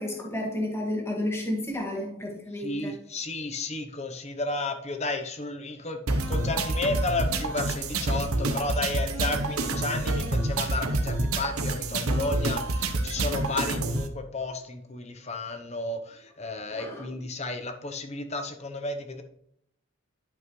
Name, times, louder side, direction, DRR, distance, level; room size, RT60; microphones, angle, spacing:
voice 1, 0.0-3.0 16.7-17.1, left 1 dB, 10° left, -1 dB, 1.8 m, -31 dB
voice 2, 2.6-6.0 6.3-19.2, left 2 dB, 30° left, 6 dB, 0.9 m, -33 dB
sound 1, 6.1-14.1, right 2 dB, 85° right, 0.9 m, -28 dB
11.0 x 5.6 x 3.2 m, 0.70 s
head